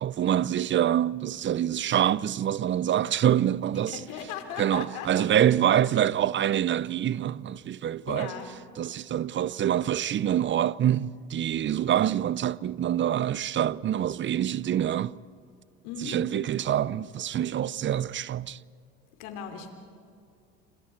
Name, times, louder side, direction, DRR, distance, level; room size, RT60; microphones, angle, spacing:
voice 1, 0.0-4.0 4.6-8.3 8.8-15.2 16.0-18.6, right 10 dB, 40° right, 0.6 m, -26 dB
voice 2, 3.9-5.3 8.1-8.5 15.8-16.2 19.2-19.7, left 7 dB, 80° left, 3.1 m, -37 dB
27.5 x 27.0 x 4.6 m
supercardioid pair, 85°, 31 cm